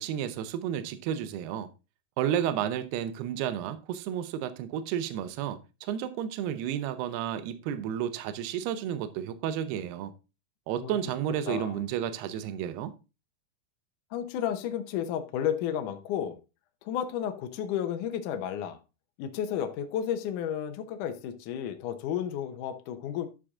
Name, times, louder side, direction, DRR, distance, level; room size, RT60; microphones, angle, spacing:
voice 1, 0.0-1.7 2.2-10.1 10.7-12.9, right 10 dB, 75° right, 2.7 m, -32 dB
voice 2, 14.1-16.4 16.9-18.8 19.2-23.3, left 9 dB, 70° left, 2.0 m, -32 dB
11.5 x 5.8 x 3.7 m
omnidirectional pair, 4.8 m